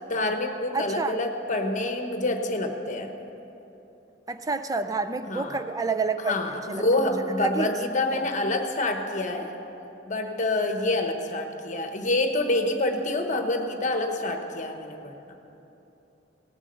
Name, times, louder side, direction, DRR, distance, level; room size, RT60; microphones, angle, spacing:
voice 1, 0.1-3.1 5.2-5.6 6.2-9.5 10.1-15.1, left 2 dB, 45° left, 5 dB, 1.1 m, -27 dB
voice 2, 0.7-1.1 4.3-6.3 6.7-7.1 7.4-7.7 8.1-8.2, right 4 dB, 20° right, 9 dB, 0.4 m, -29 dB
17.5 x 7.3 x 6.7 m, 3.0 s
head